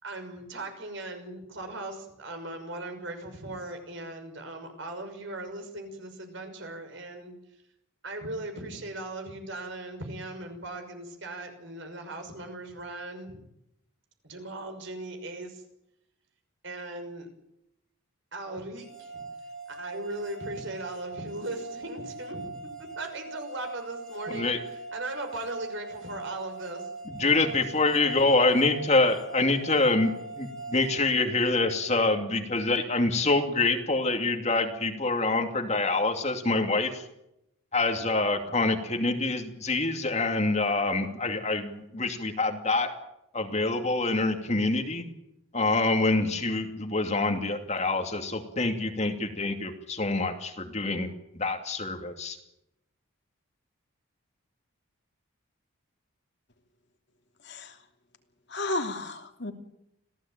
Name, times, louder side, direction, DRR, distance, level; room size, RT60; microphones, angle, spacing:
voice 1, 0.0-7.3 8.0-13.4 14.2-15.6 16.6-17.3 18.3-19.2 19.7-24.5 24.9-27.2, right 2 dB, 55° right, 6 dB, 6.1 m, -38 dB
sound 1, 18.8-31.8, right 3 dB, ahead, 2.4 m, -41 dB
voice 2, 24.3-24.6 27.2-37.1 37.7-42.9 43.3-45.0 45.5-51.1 51.3-52.4, left 3 dB, 30° left, 5 dB, 2.6 m, -26 dB
voice 3, 57.4-57.8 58.5-59.5, left 2 dB, 50° left, 4 dB, 2.9 m, -32 dB
27.0 x 17.0 x 9.0 m, 0.83 s
head